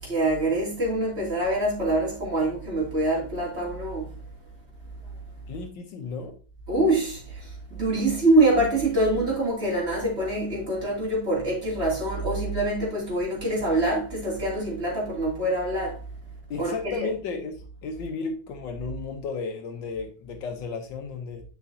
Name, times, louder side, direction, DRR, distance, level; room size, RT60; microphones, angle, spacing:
voice 1, 0.0-4.1 6.7-16.0 16.6-17.1, right 1 dB, 30° right, 3.1 m, -25 dB
voice 2, 5.5-6.3 16.5-21.4, left 4 dB, 70° left, 1.5 m, -34 dB
8.2 x 6.2 x 2.7 m
omnidirectional pair, 2.2 m